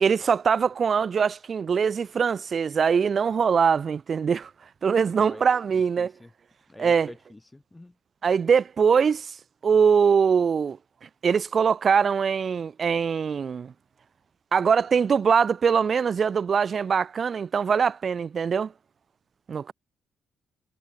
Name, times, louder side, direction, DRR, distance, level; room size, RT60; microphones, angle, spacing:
voice 1, 0.0-4.5 4.8-6.1 6.8-7.1 8.2-9.4 9.6-10.8 11.2-13.7 14.5-18.7 19.5-19.7, right 6 dB, 45° right, 0.3 m, -22 dB
voice 2, 6.0-6.3 6.7-7.9, left 2 dB, 15° left, 0.6 m, -46 dB
cardioid pair, 90°, 0 cm